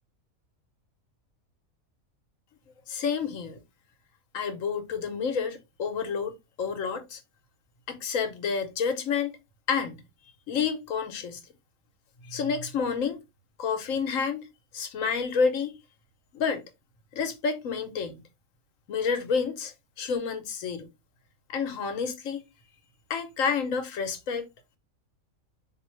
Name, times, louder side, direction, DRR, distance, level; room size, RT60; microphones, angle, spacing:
voice 1, 2.9-3.6 4.3-7.2 7.9-9.4 9.7-10.0 10.5-11.4 12.2-13.2 13.6-14.5 14.7-15.8 16.3-16.6 17.1-18.2 18.9-20.9 21.5-22.4 23.1-24.5, left 6 dB, 70° left, 1.2 m, -29 dB
4.1 x 2.6 x 3.0 m
omnidirectional pair, 1.5 m